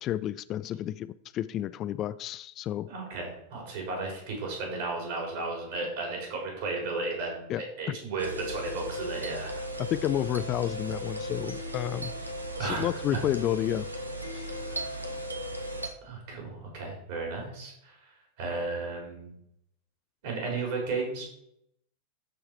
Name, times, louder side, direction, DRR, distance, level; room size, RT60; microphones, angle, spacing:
voice 1, 0.0-2.9 7.5-7.6 7.9-8.0 9.8-12.1 12.6-13.9 14.2-14.6, left 12 dB, 35° left, 0.3 m, -31 dB
voice 2, 2.9-9.6 12.6-13.2 14.7-15.0 16.0-18.0 18.4-19.4 20.2-21.2, right 3 dB, 50° right, 3.9 m, -34 dB
sound 1, 8.2-15.9, right 1 dB, 85° right, 1.3 m, -36 dB
13.0 x 4.7 x 4.6 m
figure-of-eight pair, 90°, 0 cm